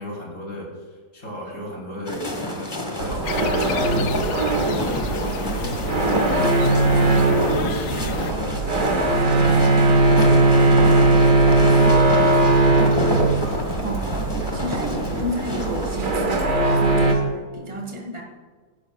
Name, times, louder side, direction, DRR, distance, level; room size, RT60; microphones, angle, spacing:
voice 1, 0.0-9.0 9.8-10.9 11.4-12.3, equal, 60° left, -2 dB, 3.8 m, -36 dB
sound 1, 2.1-16.3, equal, 15° left, 1.5 m, -29 dB
sound 2, 3.0-17.1, right 2 dB, 55° right, 1.8 m, -19 dB
sound 3, 3.2-8.3, left 10 dB, 90° left, 1.2 m, -34 dB
voice 2, 14.5-18.2, equal, 25° right, 0 dB, 1.8 m, -31 dB
15.0 x 12.0 x 2.4 m, 1.5 s
omnidirectional pair, 1.7 m